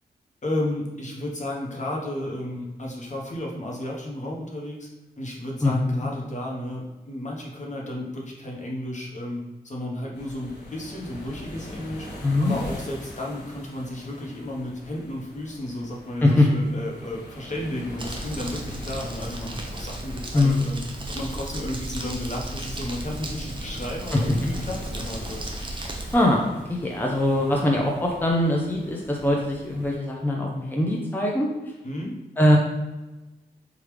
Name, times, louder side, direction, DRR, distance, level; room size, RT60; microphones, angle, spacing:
voice 1, 0.4-4.9 5.2-12.1 12.4-20.8 21.1-25.4 31.8-32.2, left 1 dB, 45° left, -2 dB, 0.9 m, -33 dB
voice 2, 5.6-6.1 12.2-12.5 16.2-16.5 20.3-20.6 24.1-24.2 26.1-31.5 32.4-32.6, left 1 dB, 10° left, -1 dB, 0.6 m, -22 dB
sound 1, 10.1-30.0, left 1 dB, 85° left, 0.9 m, -42 dB
Crumpling crinkling, 18.0-26.1, right 1 dB, 30° right, 0.7 m, -35 dB
3.1 x 2.4 x 3.3 m, 1.1 s
cardioid pair, 45°, 17 cm